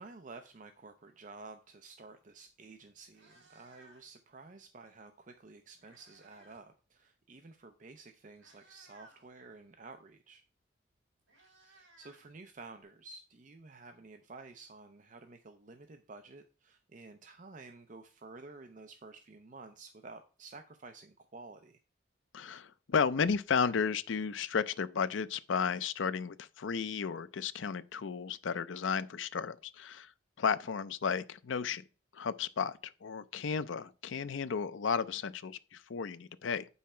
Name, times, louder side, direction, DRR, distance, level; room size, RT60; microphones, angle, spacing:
voice 1, 0.0-10.4 11.6-21.8, right 3 dB, 45° right, 0.6 m, -52 dB
Meow, 2.5-2.6 3.0-4.3 5.3-6.7 6.9-7.2 7.9-8.0 8.3-9.3 10.6-10.7 10.9-12.8, right 1 dB, 80° right, 3.0 m, -62 dB
voice 2, 22.3-30.1 30.4-31.8 32.1-36.7, left 6 dB, 85° left, 0.5 m, -33 dB
8.4 x 5.6 x 4.3 m
head